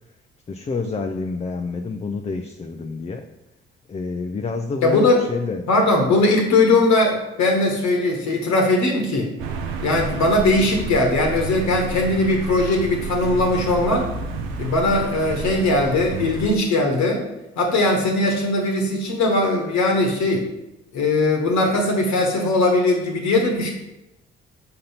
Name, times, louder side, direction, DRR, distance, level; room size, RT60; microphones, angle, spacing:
voice 1, 0.5-3.3 3.9-5.6, left 4 dB, 20° left, 5 dB, 0.5 m, -28 dB
voice 2, 4.8-5.2 5.7-9.3 9.8-14.1 14.6-17.2 17.6-20.5 20.9-23.7, left 2 dB, 65° left, 1 dB, 1.2 m, -19 dB
sound 1, 9.4-16.5, right 4 dB, 75° right, 0.7 m, -30 dB
5.4 x 3.9 x 5.7 m, 0.94 s
hypercardioid pair, 45°, 30 cm